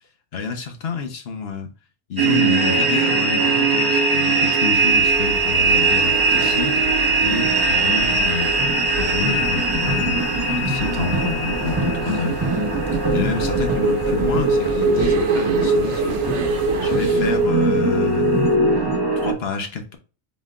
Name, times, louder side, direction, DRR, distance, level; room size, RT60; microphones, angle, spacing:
voice 1, 0.3-1.7 2.1-6.9 7.2-8.5 9.0-10.2 10.6-12.4 13.1-16.2 16.8-18.4 19.2-20.0, left 5 dB, 55° left, 1.0 m, -28 dB
sound 1, 2.2-19.3, right 3 dB, 20° right, 0.9 m, -20 dB
sound 2, 4.6-17.5, right 4 dB, 85° right, 1.2 m, -32 dB
4.1 x 3.9 x 2.4 m
omnidirectional pair, 1.4 m